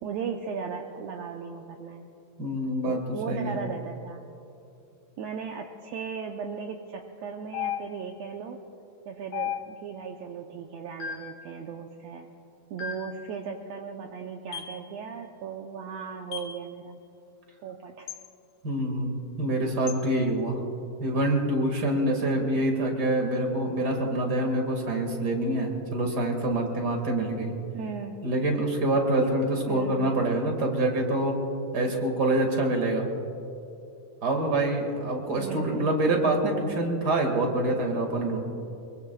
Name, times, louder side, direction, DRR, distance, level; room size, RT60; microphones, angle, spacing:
voice 1, 0.0-2.1 2.8-4.2 5.2-8.6 9.0-12.3 12.7-17.0 17.6-18.1 27.7-28.2 29.7-30.1 35.4-36.0, right 6 dB, 75° right, 2 dB, 1.6 m, -37 dB
voice 2, 2.4-3.0 3.3-3.6 18.6-20.6 21.0-27.5 28.2-31.3 31.7-33.0 34.2-38.4, right 1 dB, 35° right, 2 dB, 2.1 m, -26 dB
sound 1, 7.5-8.2 9.3-10.0 11.0-11.4 12.8-13.2 14.5-14.8 16.3-16.6 18.1-18.3 19.9-20.1, left 9 dB, 65° left, 2.2 m, -35 dB
24.5 x 24.0 x 2.3 m, 2.7 s
omnidirectional pair, 3.8 m